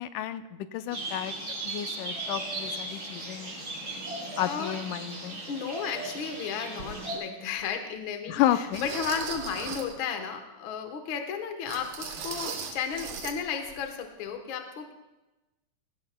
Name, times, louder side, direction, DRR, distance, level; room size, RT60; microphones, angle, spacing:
voice 1, 0.0-1.4 1.6-3.5 4.4-5.4 8.3-8.9, left 12 dB, 90° left, 11 dB, 2.2 m, -31 dB
sound 1, 0.9-7.2, right 2 dB, 30° right, 3.6 m, -37 dB
voice 2, 4.4-4.7 5.5-14.9, left 7 dB, 60° left, 5 dB, 1.4 m, -34 dB
sound 2, 6.8-6.9 7.6-7.7 8.7-10.0 11.7-13.4 13.6-13.8 14.3-14.4, right 6 dB, 60° right, 1.5 m, -38 dB
17.0 x 16.5 x 2.2 m, 1.0 s
omnidirectional pair, 3.5 m